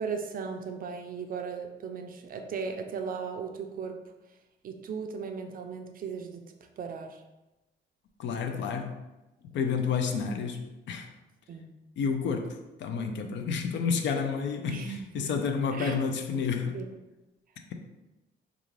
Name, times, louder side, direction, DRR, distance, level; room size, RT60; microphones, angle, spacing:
voice 1, 0.0-4.0 4.6-6.5 6.8-7.2 8.5-8.7 9.6-9.7 11.5-11.7 14.6-15.3 15.7-16.0 16.7-16.9, right 5 dB, 45° right, 5 dB, 0.4 m, -37 dB
voice 2, 8.2-8.9 9.5-11.1 12.0-14.8 15.1-16.8, left 6 dB, 65° left, 5 dB, 0.4 m, -30 dB
2.4 x 2.4 x 3.1 m, 1.0 s
cardioid pair, 90°, 20 cm